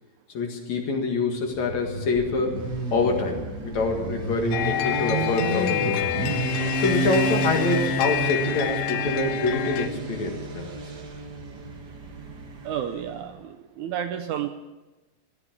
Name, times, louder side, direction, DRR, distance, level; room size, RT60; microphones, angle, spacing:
voice 1, 0.3-2.6 2.9-6.1 6.8-10.7, left 3 dB, 60° left, 2 dB, 3.0 m, -26 dB
Motorcycle, 1.5-13.2, right 3 dB, 40° right, 1.6 m, -31 dB
sound 1, 4.5-9.9, left 13 dB, 80° left, 2.1 m, -28 dB
voice 2, 12.6-14.5, right 9 dB, 75° right, 6 dB, 1.9 m, -31 dB
15.0 x 9.7 x 8.5 m, 1.1 s
omnidirectional pair, 3.9 m